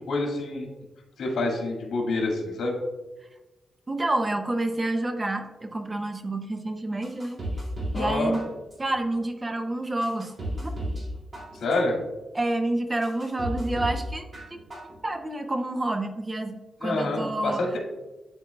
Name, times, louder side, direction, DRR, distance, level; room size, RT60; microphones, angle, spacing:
voice 1, 0.1-0.7 1.2-2.7 7.9-8.4 11.5-12.0 16.8-17.8, left 2 dB, 85° left, 0 dB, 1.8 m, -27 dB
voice 2, 3.9-7.4 7.9-8.4 8.8-10.3 10.6-10.7 12.3-14.6 15.0-17.6, right 1 dB, 20° right, 6 dB, 0.5 m, -28 dB
sound 1, 7.0-8.1 8.3-9.0 9.5-9.6 10.0-11.1 11.3-12.0 12.5-12.6 13.0-14.0 14.3-15.0 15.3-15.4, right 1 dB, 35° right, 1.9 m, -33 dB
11.0 x 4.4 x 2.2 m, 1.1 s
wide cardioid pair, 160°, 0 cm